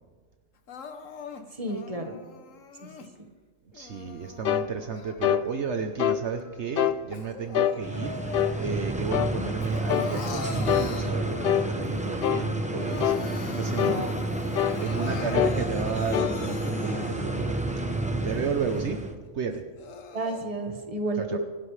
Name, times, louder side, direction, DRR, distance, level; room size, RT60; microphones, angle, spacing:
Crying sobbing, 0.7-3.1 3.7-5.5 6.0-8.9 9.2-11.9 12.3-12.4 12.7-17.5 18.0-18.1 18.7-18.8 19.5-20.5, left 4 dB, 85° left, 1.4 m, -42 dB
voice 1, 1.5-2.2 2.8-3.3 13.8-14.2 20.1-21.4, right 2 dB, 30° right, 4 dB, 1.6 m, -32 dB
voice 2, 3.7-14.1 14.8-17.6 18.2-19.0 19.3-19.7 21.2-21.4, right 5 dB, 65° right, 6 dB, 1.2 m, -33 dB
sound 1, 4.4-4.7 5.2-5.5 6.0-6.2 6.8-7.0 7.5-7.8 8.3-8.6 9.1-9.4 9.9-10.1 10.7-10.9 11.4-11.7 12.2-12.5 13.0-13.2 13.8-14.0 14.6-14.8 15.3-15.6 16.1-16.4, left 10 dB, 60° left, 0.7 m, -24 dB
sound 2, 7.8-19.1, right 1 dB, 5° right, 1.1 m, -30 dB
26.0 x 13.0 x 3.3 m, 1.5 s
omnidirectional pair, 1.3 m